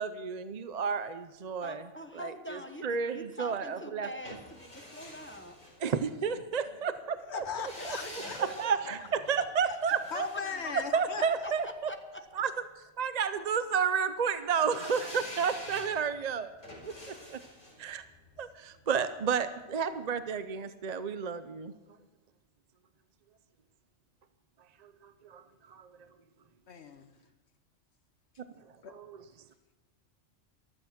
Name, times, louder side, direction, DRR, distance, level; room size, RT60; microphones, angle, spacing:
voice 1, 0.0-1.8 2.2-4.1 5.8-7.2 8.6-9.0 9.3-10.3 10.9-11.7 12.4-12.5 13.0-16.5 16.8-16.9 17.3-17.4 17.8-18.0 18.4-21.7 24.8-25.4 25.7-25.9 28.4-28.5 28.9-29.2, right 6 dB, 45° right, 11 dB, 0.6 m, -31 dB
voice 2, 1.6-5.6 7.1-8.5 8.9-9.8 10.3-12.2, equal, 10° left, 6 dB, 1.0 m, -45 dB
sound 1, 4.2-6.4 7.4-11.6 14.6-19.6 19.9-20.0, left 1 dB, 40° left, 5.0 m, -48 dB
voice 3, 7.3-8.4 9.0-9.1 10.1-11.5 26.7-27.2 28.8-28.9, left 5 dB, 60° left, 8 dB, 1.2 m, -38 dB
14.5 x 13.0 x 5.9 m, 1.1 s
omnidirectional pair, 1.3 m